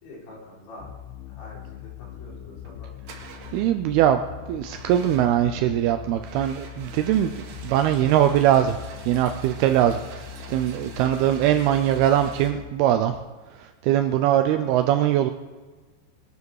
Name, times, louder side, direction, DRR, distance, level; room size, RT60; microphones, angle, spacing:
voice 1, 0.0-0.9 1.3-2.9 10.9-11.2 14.4-14.7, left 2 dB, 65° left, -4 dB, 6.0 m, -45 dB
sound 1, 0.8-12.7, left 10 dB, 90° left, 3.4 m, -41 dB
sound 2, 2.5-2.7 3.1-3.7 4.6-5.5 6.2-12.5, right 5 dB, 65° right, 3.8 m, -45 dB
voice 2, 3.5-4.2 4.5-8.8 9.1-10.2 10.5-13.2 13.5-15.3, right 11 dB, 85° right, 7 dB, 2.2 m, -21 dB
21.5 x 12.0 x 4.8 m, 1.3 s
omnidirectional pair, 5.3 m